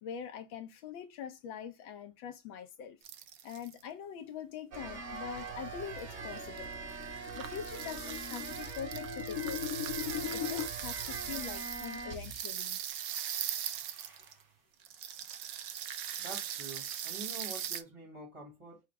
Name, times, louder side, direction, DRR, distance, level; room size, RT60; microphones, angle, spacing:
voice 1, 0.0-3.0 3.4-6.7 7.4-9.6 10.3-12.8, left 8 dB, 75° left, 1.4 m, -43 dB
sound 1, 3.0-3.8 5.4-5.5 6.0-6.1 6.4-6.7 6.9-14.4 14.8-17.8, right 10 dB, 70° right, 1.0 m, -40 dB
sound 2, 4.7-12.6 12.9-14.4, right 4 dB, 50° right, 0.9 m, -43 dB
sound 3, 5.9-10.7, left 10 dB, 90° left, 0.6 m, -40 dB
voice 2, 16.2-18.8, right 2 dB, 20° right, 0.9 m, -46 dB
4.7 x 2.0 x 4.6 m
omnidirectional pair, 2.3 m